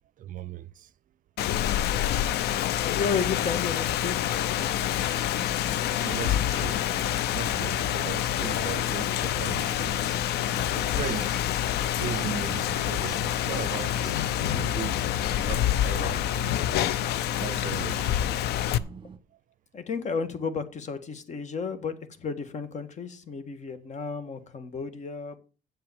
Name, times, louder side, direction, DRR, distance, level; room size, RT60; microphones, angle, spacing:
voice 1, 0.2-0.9 6.0-10.0 10.4-11.4 12.0-15.0 15.5-16.6 17.3-18.3 19.3-19.4, right 10 dB, 50° right, 0.6 m, -38 dB
Rain, 1.4-18.8, left 12 dB, 75° left, 0.6 m, -27 dB
voice 2, 2.8-4.3 19.7-25.4, left 5 dB, 45° left, 1.7 m, -32 dB
sound 1, 4.2-19.2, right 6 dB, 30° right, 1.3 m, -47 dB
sound 2, 5.4-14.5, left 5 dB, 20° left, 0.9 m, -47 dB
7.8 x 7.8 x 7.0 m
cardioid pair, 110°, 17 cm